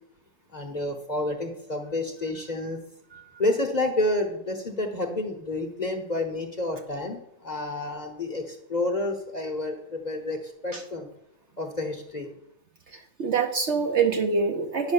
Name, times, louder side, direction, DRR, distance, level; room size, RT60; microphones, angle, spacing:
voice 1, 0.5-2.8 3.4-11.1 11.6-12.3, left 2 dB, 30° left, 4 dB, 1.0 m, -29 dB
voice 2, 12.9-14.9, right 5 dB, 55° right, 5 dB, 0.9 m, -25 dB
9.6 x 5.3 x 7.0 m, 0.76 s
omnidirectional pair, 1.7 m